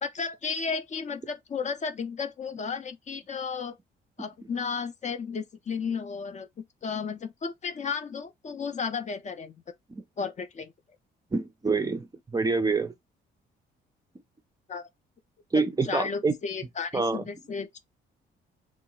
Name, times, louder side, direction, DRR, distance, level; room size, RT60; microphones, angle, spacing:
voice 1, 0.0-3.8 4.2-6.5 6.8-9.6 10.2-10.7 14.7-14.9 15.5-17.8, left 5 dB, 35° left, 0.5 m, -33 dB
voice 2, 11.3-12.9 15.5-16.3 16.9-17.2, right 4 dB, 20° right, 0.4 m, -26 dB
2.4 x 2.0 x 3.7 m
cardioid pair, 90°, 20 cm